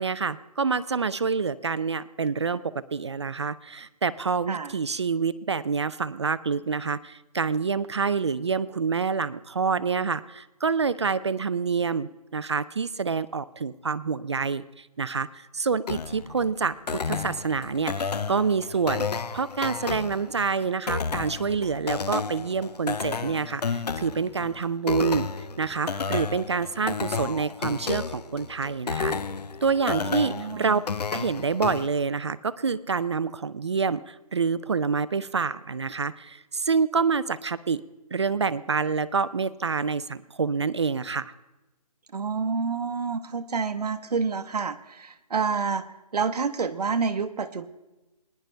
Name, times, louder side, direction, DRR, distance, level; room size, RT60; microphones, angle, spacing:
voice 1, 0.0-19.1 19.3-25.3 25.6-29.1 29.6-30.8 31.1-37.8 38.1-41.3, right 5 dB, 45° right, 16 dB, 0.4 m, -27 dB
sound 1, 15.9-31.9, left 5 dB, 80° left, 0.7 m, -32 dB
voice 2, 29.9-30.8 42.1-45.8 46.1-47.7, right 5 dB, 75° right, 8 dB, 1.0 m, -28 dB
21.0 x 10.5 x 3.3 m, 1.0 s
hypercardioid pair, 170°, 20 cm